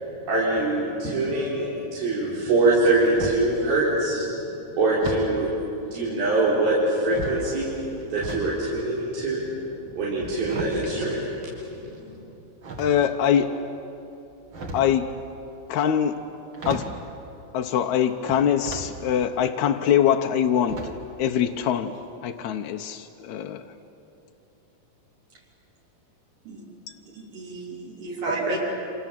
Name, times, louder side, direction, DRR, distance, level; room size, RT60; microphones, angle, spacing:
voice 1, 0.3-5.5 5.9-9.5 9.9-11.2 11.6-12.2, right 2 dB, 90° right, -7 dB, 5.9 m, -24 dB
sound 1, 3.0-3.6 5.0-5.4 6.2-6.7 7.0-8.5 8.8-11.8 12.6-13.3 14.3-15.0 16.2-16.3 16.5-17.0 18.2-18.9 19.4-19.5 20.7-21.2 21.5-21.6 21.9-22.0, right 2 dB, 40° right, 2.4 m, -36 dB
voice 2, 12.8-13.5 14.7-15.1 15.7-16.2 16.7-16.9 17.5-20.9 21.2-21.9 22.2-23.6, left 9 dB, 75° left, 4 dB, 1.8 m, -23 dB
voice 3, 27.1-28.6, right 3 dB, 65° right, -3 dB, 5.1 m, -34 dB
29.5 x 26.5 x 7.6 m, 2.8 s
omnidirectional pair, 4.1 m